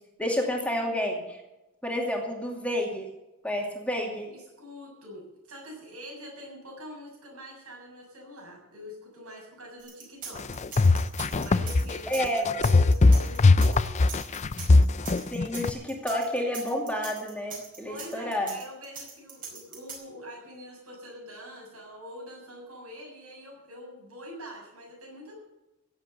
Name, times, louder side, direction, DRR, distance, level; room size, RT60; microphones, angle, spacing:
voice 1, 0.2-1.4 1.8-3.1 3.4-4.3 12.1-12.4 15.3-18.5, equal, 5° left, 0 dB, 2.4 m, -30 dB
voice 2, 4.2-10.6 11.1-14.1 17.8-25.5, equal, 75° right, -1 dB, 7.3 m, -45 dB
sound 1, 9.8-19.9, right 5 dB, 40° right, 4.9 m, -41 dB
sound 2, 10.4-15.7, left 3 dB, 30° left, 0.5 m, -20 dB
16.5 x 8.0 x 7.9 m, 1.0 s
head